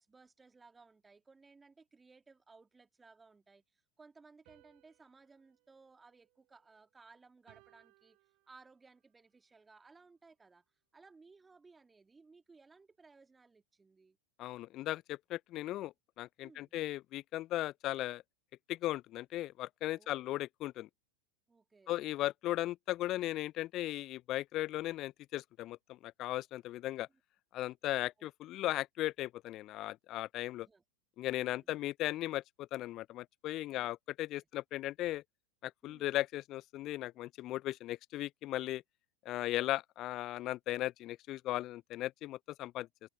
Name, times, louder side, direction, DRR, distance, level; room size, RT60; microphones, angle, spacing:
voice 1, 0.0-8.2 8.5-10.6 10.9-14.2 16.4-16.7 19.9-20.3 21.5-22.0 28.0-28.3 30.6-30.8 31.3-31.7 33.7-33.9 34.3-34.5 35.8-36.2 39.5-39.7, right 4 dB, 15° right, 2.7 m, -61 dB
sound 1, 4.5-6.9 7.5-9.0, right 29 dB, 50° right, 4.3 m, -68 dB
voice 2, 14.4-18.2 18.7-20.9 21.9-27.1 27.5-30.7 31.2-35.2 35.6-38.8 39.3-42.9, left 15 dB, 40° left, 0.5 m, -37 dB
figure-of-eight pair, 90°, 0 cm